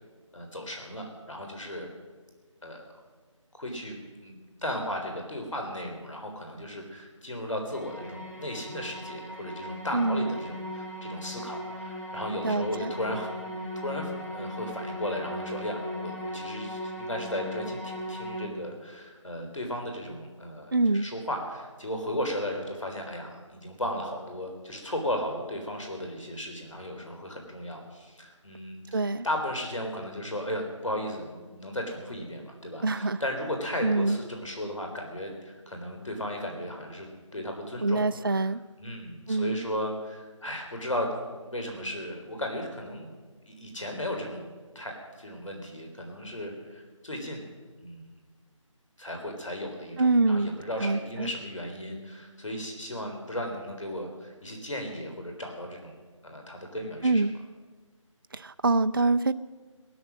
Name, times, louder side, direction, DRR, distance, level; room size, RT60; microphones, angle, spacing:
voice 1, 0.3-1.9 2.6-2.9 3.5-4.0 4.2-13.3 13.8-38.5 38.8-43.1 43.5-44.4 44.7-47.4 47.8-48.1 49.0-56.0 56.2-57.2, left 1 dB, 70° left, 3 dB, 3.8 m, -35 dB
sound 1, 7.7-18.5, equal, ahead, 0.7 m, -38 dB
voice 2, 9.9-10.4 12.4-12.9 20.7-21.1 28.9-29.2 32.8-33.2 33.8-34.2 37.8-38.6 39.3-39.6 50.0-51.3 57.0-57.3 58.3-59.3, right 3 dB, 40° right, 15 dB, 0.4 m, -25 dB
18.0 x 12.5 x 6.3 m, 1.4 s
figure-of-eight pair, 160°, 17 cm